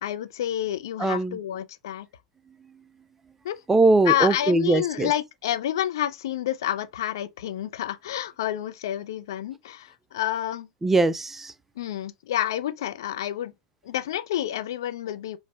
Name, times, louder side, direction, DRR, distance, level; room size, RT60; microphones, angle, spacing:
voice 1, 0.0-2.1 3.4-3.6 4.1-10.7 11.8-13.5 13.8-15.4, left 12 dB, 65° left, 0.4 m, -29 dB
voice 2, 1.0-1.4 3.7-5.1 10.8-11.5, right 2 dB, 10° right, 0.4 m, -21 dB
4.6 x 2.1 x 2.9 m
figure-of-eight pair, 90°, 2 cm